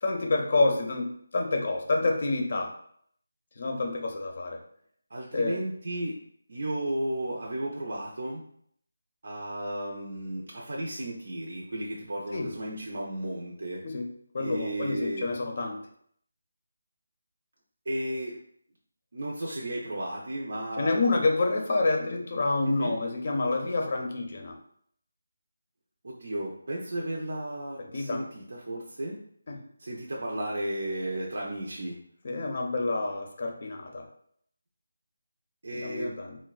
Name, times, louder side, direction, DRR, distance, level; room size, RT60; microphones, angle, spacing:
voice 1, 0.0-2.7 3.6-4.6 5.3-5.6 12.3-12.5 13.8-14.1 14.3-15.8 20.8-24.6 27.8-28.3 29.5-29.6 32.2-34.1 35.8-36.3, left 3 dB, 45° left, 2 dB, 0.5 m, -28 dB
voice 2, 5.1-6.2 6.5-8.4 9.2-13.8 14.4-15.3 17.9-18.4 19.1-21.0 22.7-23.0 26.0-29.2 29.8-32.0 35.6-36.2, right 1 dB, 60° right, -2 dB, 0.5 m, -34 dB
3.9 x 2.1 x 2.3 m, 0.64 s
figure-of-eight pair, 170°, 0 cm